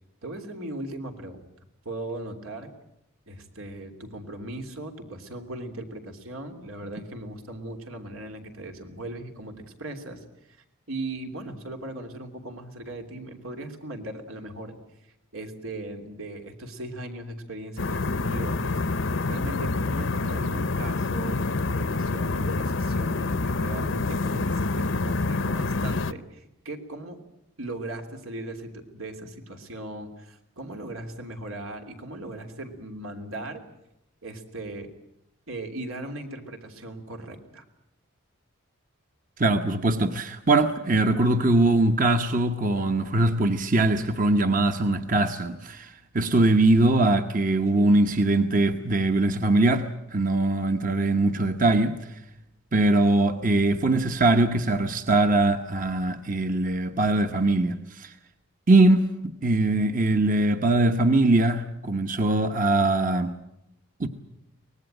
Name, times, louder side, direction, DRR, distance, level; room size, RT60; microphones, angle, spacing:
voice 1, 0.2-1.5 1.8-2.7 3.3-10.6 10.9-14.7 15.3-27.2 27.6-33.6 34.2-34.9 35.5-37.6, right 1 dB, 90° right, 3.2 m, -38 dB
sound 1, 17.8-26.1, left 3 dB, 70° left, 0.8 m, -27 dB
voice 2, 39.4-52.0 52.7-58.1 58.7-63.3 64.0-64.1, right 2 dB, 40° right, 1.0 m, -22 dB
24.0 x 19.0 x 9.0 m
head